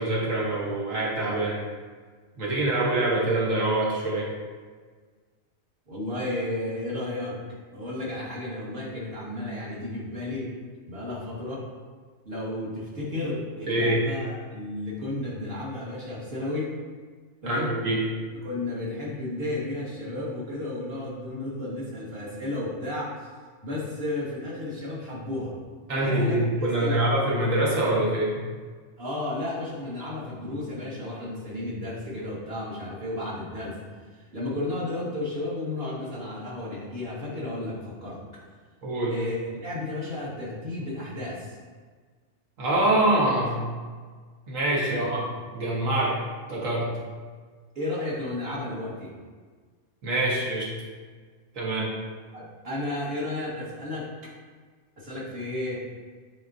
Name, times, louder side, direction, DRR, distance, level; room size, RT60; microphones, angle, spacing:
voice 1, 0.0-1.6 2.4-4.3 13.7-14.0 17.5-18.0 25.9-28.4 38.8-39.1 42.6-43.7 44.5-45.2 45.5-46.2 46.5-46.9 50.0-50.7 51.5-51.9, right 1 dB, 85° right, -5 dB, 1.7 m, -25 dB
voice 2, 5.9-7.4 7.7-10.5 10.9-11.6 12.2-16.7 17.4-17.7 18.4-23.1 23.6-25.5 25.9-27.0 29.0-33.8 34.1-38.4 39.1-41.6 44.9-45.0 47.8-49.1 52.3-54.1 55.0-55.8, left 1 dB, 50° right, -6 dB, 1.9 m, -33 dB
7.8 x 4.6 x 2.7 m, 1.5 s
omnidirectional pair, 1.3 m